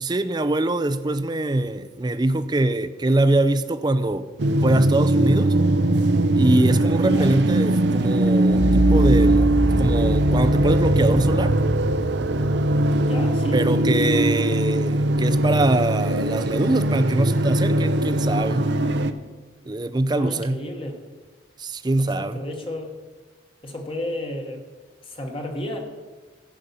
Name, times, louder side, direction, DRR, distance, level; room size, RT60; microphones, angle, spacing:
voice 1, 0.0-4.3 4.6-5.5 6.3-9.5 9.8-11.5 13.5-18.7 19.7-20.6 21.6-22.4, right 2 dB, 20° right, 12 dB, 0.4 m, -23 dB
sound 1, 4.4-19.1, right 1 dB, 65° right, 0.6 m, -21 dB
sound 2, 8.5-14.5, equal, 45° left, 2.8 m, -24 dB
voice 2, 13.0-13.6 20.1-21.0 22.2-22.9 23.6-24.6 25.0-25.8, left 1 dB, 30° left, 2 dB, 1.2 m, -32 dB
15.0 x 5.3 x 6.9 m, 1.3 s
head